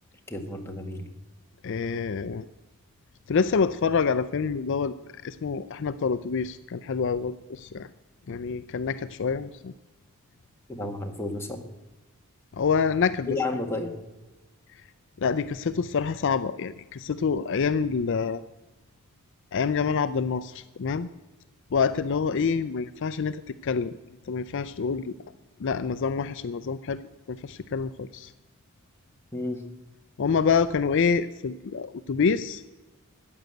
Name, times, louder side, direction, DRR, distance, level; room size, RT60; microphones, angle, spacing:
voice 1, 0.3-1.1 10.7-11.6 13.3-13.9 29.3-29.6, left 2 dB, 10° left, 3 dB, 1.7 m, -31 dB
voice 2, 1.6-2.5 3.3-4.9 5.2-7.9 8.3-9.7 12.5-13.4 15.2-18.4 19.5-21.1 21.7-23.9 24.3-25.1 25.6-27.0 27.3-28.3 30.2-32.6, left 5 dB, 60° left, 14 dB, 0.4 m, -27 dB
14.5 x 9.2 x 7.9 m, 1.1 s
head